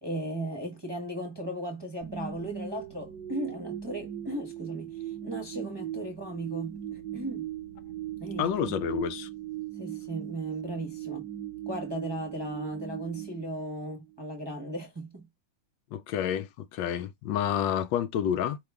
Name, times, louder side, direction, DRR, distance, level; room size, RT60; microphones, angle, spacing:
voice 1, 0.0-7.5 8.2-8.8 9.8-11.3 11.7-15.3, right 1 dB, 20° right, 0.8 m, -37 dB
sound 1, 2.0-14.2, right 11 dB, 70° right, 1.1 m, -39 dB
voice 2, 8.4-9.3 15.9-18.6, left 9 dB, 75° left, 1.2 m, -29 dB
4.9 x 3.0 x 3.4 m
omnidirectional pair, 2.1 m